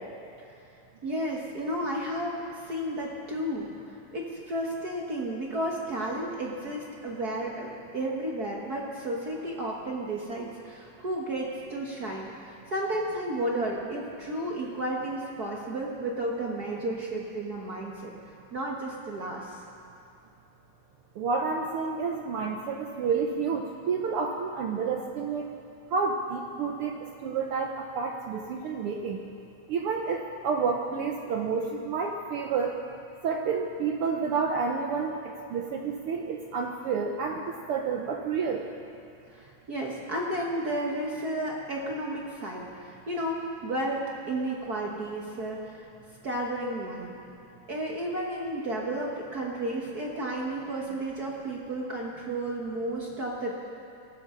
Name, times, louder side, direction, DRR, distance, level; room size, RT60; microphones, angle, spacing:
voice 1, 1.0-18.1 18.5-19.6 39.3-45.8 46.2-47.1 47.7-53.5, right 1 dB, 45° right, -2 dB, 1.3 m, -32 dB
voice 2, 21.2-25.5 25.9-29.2 29.7-32.7 33.2-38.6, right 5 dB, 70° right, 2 dB, 1.3 m, -30 dB
23.5 x 13.5 x 3.8 m, 2.6 s
omnidirectional pair, 3.3 m